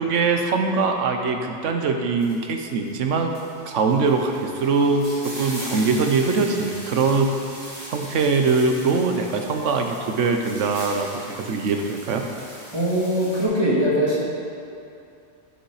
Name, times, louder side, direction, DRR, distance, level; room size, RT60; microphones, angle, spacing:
voice 1, 0.0-3.3 3.7-7.4 7.9-12.3, right 4 dB, 90° right, 4 dB, 1.1 m, -22 dB
sound 1, 2.2-2.4 2.8-13.4, right 1 dB, 40° right, 2.0 m, -39 dB
voice 2, 12.7-14.2, equal, 20° right, -7 dB, 1.8 m, -21 dB
10.5 x 5.7 x 4.8 m, 2.6 s
omnidirectional pair, 1.2 m